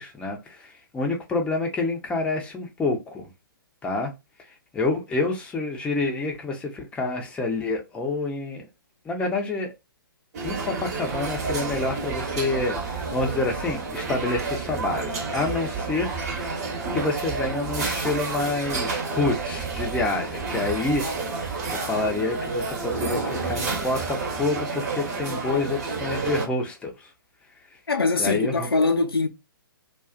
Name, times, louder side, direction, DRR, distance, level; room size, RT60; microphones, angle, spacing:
voice 1, 0.0-3.3 3.8-4.1 4.7-8.6 9.1-9.7 10.4-16.6 16.9-26.9 28.2-28.7, left 3 dB, 10° left, 0.5 m, -28 dB
sound 1, 10.3-26.5, right 4 dB, 45° right, 1.0 m, -30 dB
voice 2, 27.9-29.3, left 3 dB, 85° left, 0.5 m, -22 dB
2.4 x 2.3 x 2.3 m
figure-of-eight pair, 125°, 12 cm